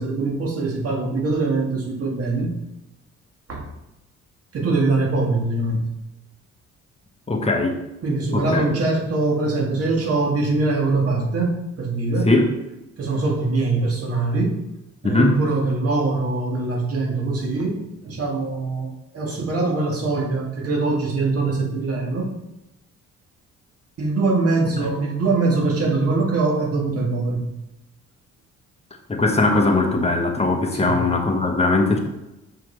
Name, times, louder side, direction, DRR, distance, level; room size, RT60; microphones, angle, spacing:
voice 1, 0.0-2.5 3.5-3.6 4.5-5.9 8.0-12.3 13.0-14.6 15.0-18.9 19.1-22.3 24.0-27.5 30.7-31.0, right 3 dB, 50° right, -1 dB, 1.8 m, -23 dB
voice 2, 7.3-7.8 8.3-8.6 12.2-12.5 15.0-15.4 29.1-32.0, left 2 dB, 20° left, 3 dB, 1.1 m, -19 dB
6.5 x 5.5 x 3.3 m, 0.94 s
cardioid pair, 90°, 30 cm